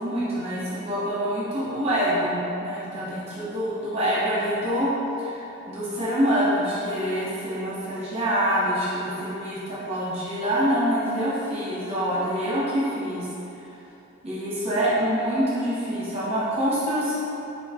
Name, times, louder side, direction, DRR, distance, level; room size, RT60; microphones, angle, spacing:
voice 1, 0.0-4.9 5.2-13.3 14.2-17.2, equal, 30° right, -9 dB, 0.8 m, -26 dB
3.9 x 3.1 x 3.6 m, 3.0 s
head